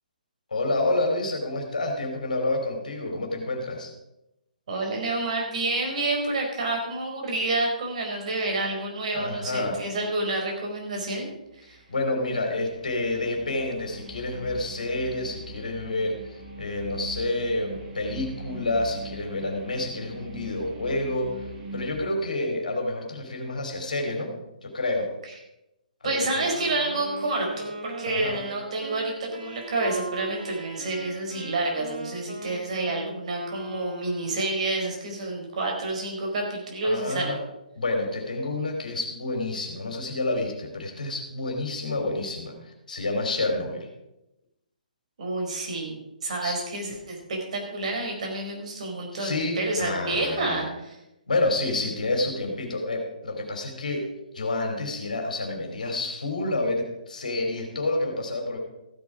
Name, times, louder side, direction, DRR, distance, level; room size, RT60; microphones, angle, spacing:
voice 1, 0.5-3.9 9.1-9.8 11.6-21.5 21.7-24.3 24.6-25.1 26.0-26.5 28.1-28.4 36.8-37.4 37.8-43.9 46.4-46.6 49.1-50.7 51.3-54.1 54.3-58.6, left 2 dB, 65° left, 3 dB, 2.9 m, -29 dB
voice 2, 4.7-11.3 11.6-11.8 26.0-37.4 45.2-51.0, right 2 dB, 50° right, 1 dB, 4.4 m, -29 dB
sound 1, 11.3-22.0, right 2 dB, 25° right, 2.9 m, -42 dB
Wind instrument woodwind instrument, 26.3-34.6, right 1 dB, 65° right, 3.2 m, -39 dB
15.0 x 8.6 x 5.0 m, 0.92 s
figure-of-eight pair, 135°, 5 cm